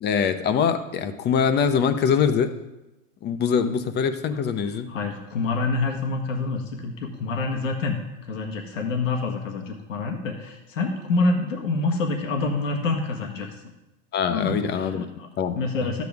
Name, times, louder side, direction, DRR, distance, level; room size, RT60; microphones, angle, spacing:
voice 1, 0.0-2.5 3.2-4.9 14.1-15.1 15.4-15.9, left 7 dB, 25° left, 10 dB, 0.8 m, -23 dB
voice 2, 4.9-8.0 8.3-13.5 14.3-14.9 15.2-15.3 15.5-16.0, left 3 dB, 75° left, 3 dB, 1.6 m, -26 dB
12.5 x 8.2 x 3.6 m, 0.99 s
hypercardioid pair, 105°, 39 cm